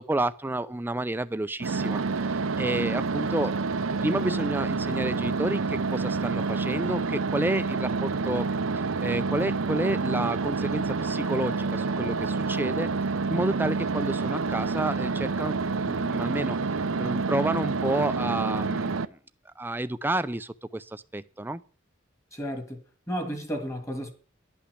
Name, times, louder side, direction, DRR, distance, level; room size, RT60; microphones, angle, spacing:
voice 1, 0.0-3.6 4.0-8.5 8.7-12.9 13.3-16.6 17.0-19.2 19.6-21.6, right 1 dB, 10° right, 0.5 m, -30 dB
sound 1, 1.6-19.1, right 4 dB, 90° right, 0.7 m, -28 dB
voice 2, 22.3-22.8 23.1-24.1, equal, 15° left, 2.1 m, -32 dB
11.5 x 5.9 x 7.9 m
head